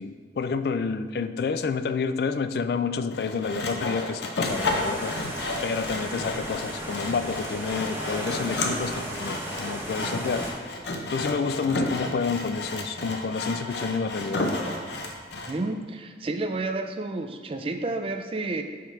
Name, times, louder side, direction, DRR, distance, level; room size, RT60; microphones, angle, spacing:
voice 1, 0.0-5.2 5.6-10.5 11.1-14.5, left 5 dB, 60° left, 11 dB, 0.3 m, -29 dB
Sawing, 3.1-15.6, left 2 dB, 80° left, 0.7 m, -32 dB
sound 1, 4.4-10.5, right 1 dB, 15° right, 0.8 m, -35 dB
voice 2, 15.4-18.6, right 2 dB, 30° right, 6 dB, 0.4 m, -30 dB
5.7 x 5.0 x 4.5 m, 1.5 s
head